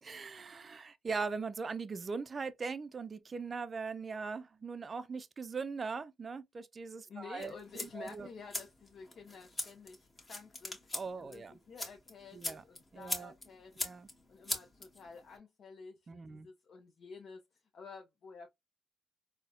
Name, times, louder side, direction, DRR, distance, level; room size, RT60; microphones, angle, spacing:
voice 1, 0.0-7.5 7.8-8.3 10.9-11.5 12.3-12.6 12.9-13.3 13.8-14.1 16.1-16.5, right 4 dB, 35° right, 0.3 m, -40 dB
voice 2, 7.1-13.9 14.3-17.4 17.7-18.5, left 5 dB, 60° left, 0.6 m, -51 dB
sound 1, 7.4-15.4, left 2 dB, 20° left, 1.1 m, -43 dB
4.0 x 2.1 x 2.4 m
cardioid pair, 90°, 0 cm